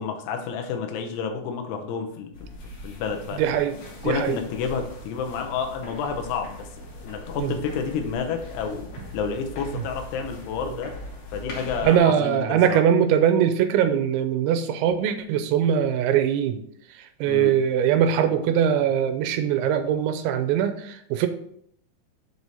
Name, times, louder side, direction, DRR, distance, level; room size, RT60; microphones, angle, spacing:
voice 1, 0.0-2.3 2.8-3.4 4.0-10.9 11.3-12.8 17.2-17.5, left 6 dB, 75° left, 4 dB, 2.7 m, -30 dB
sound 1, 2.3-12.0, left 1 dB, 60° left, 2.5 m, -40 dB
voice 2, 3.4-3.7 4.0-4.4 7.4-7.5 11.8-16.6 17.2-21.3, right 9 dB, 85° right, 8 dB, 2.9 m, -21 dB
7.1 x 4.7 x 4.1 m, 0.68 s
omnidirectional pair, 5.3 m